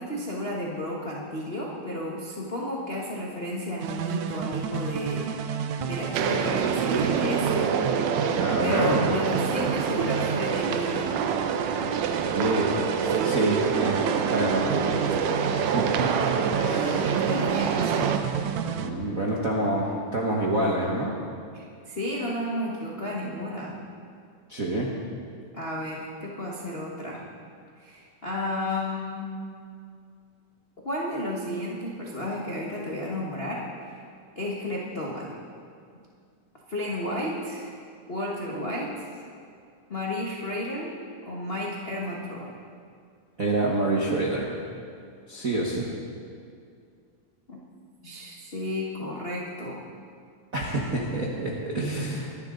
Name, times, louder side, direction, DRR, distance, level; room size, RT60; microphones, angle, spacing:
voice 1, 0.0-5.3 5.8-7.6 8.6-11.2 13.1-13.4 16.5-18.2 21.5-23.8 25.5-27.2 27.8-29.3 30.8-34.0 34.3-35.4 36.7-37.7 38.1-39.0 39.9-41.0 41.2-42.5 47.5-47.6 48.0-49.8, left 1 dB, 70° left, -4 dB, 0.5 m, -32 dB
sound 1, 3.8-18.9, right 7 dB, 75° right, 2.0 m, -32 dB
sound 2, 6.1-18.2, right 6 dB, 90° right, 2.4 m, -26 dB
voice 2, 8.4-9.2 12.2-12.7 13.2-14.0 14.3-15.2 15.5-17.1 18.7-21.1 24.5-24.9 43.4-44.6 45.3-45.9 50.5-52.3, right 2 dB, 60° right, -3 dB, 0.8 m, -27 dB
23.0 x 11.0 x 3.8 m, 2.3 s
omnidirectional pair, 3.6 m